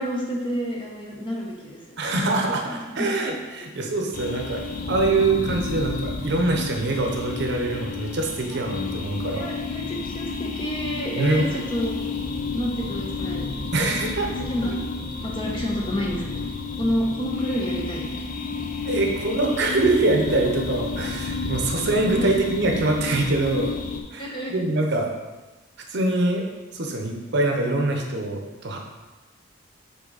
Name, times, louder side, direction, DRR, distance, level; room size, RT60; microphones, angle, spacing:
voice 1, 0.0-2.0 2.7-3.1 9.3-12.0 12.5-13.5 13.9-14.1 14.5-14.8 15.2-16.5 16.8-18.2 22.1-22.3 24.2-24.5, equal, 25° left, -2 dB, 1.0 m, -29 dB
voice 2, 2.0-9.6 11.2-11.5 13.7-14.3 18.8-23.7 24.1-25.1 25.9-26.5 26.7-28.8, right 2 dB, 55° right, 2 dB, 0.7 m, -24 dB
sound 1, 4.1-24.0, left 4 dB, 40° left, 0.5 m, -31 dB
5.9 x 4.0 x 4.0 m, 1.2 s
head